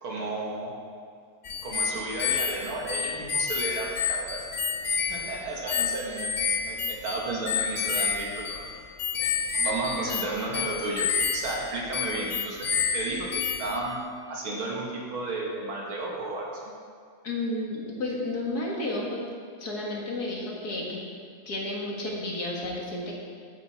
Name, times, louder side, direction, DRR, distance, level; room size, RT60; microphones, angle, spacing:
voice 1, 0.0-0.7 1.6-4.4 4.9-6.3 6.6-8.7 9.2-11.1 11.3-14.0 14.3-16.6, right 2 dB, 85° right, -3 dB, 2.9 m, -33 dB
sound 1, 1.5-13.9, left 6 dB, 75° left, 0.6 m, -29 dB
voice 2, 17.2-19.2 19.6-21.0 21.5-23.1, left 2 dB, 50° left, -3 dB, 2.3 m, -32 dB
13.0 x 8.9 x 4.5 m, 2.2 s
omnidirectional pair, 2.2 m